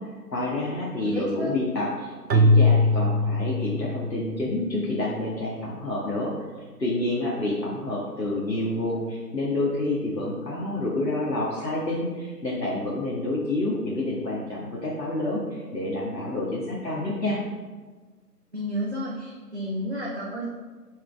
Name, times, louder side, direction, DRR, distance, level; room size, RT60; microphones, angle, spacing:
voice 1, 0.3-6.3 6.8-17.4, left 2 dB, 85° left, -5 dB, 1.7 m, -28 dB
voice 2, 1.1-1.5 18.5-20.5, equal, 40° right, -5 dB, 1.0 m, -31 dB
Keyboard (musical), 2.3-4.6, left 1 dB, 90° right, 0.7 m, -21 dB
7.2 x 5.5 x 3.5 m, 1.4 s
figure-of-eight pair, 175°, 49 cm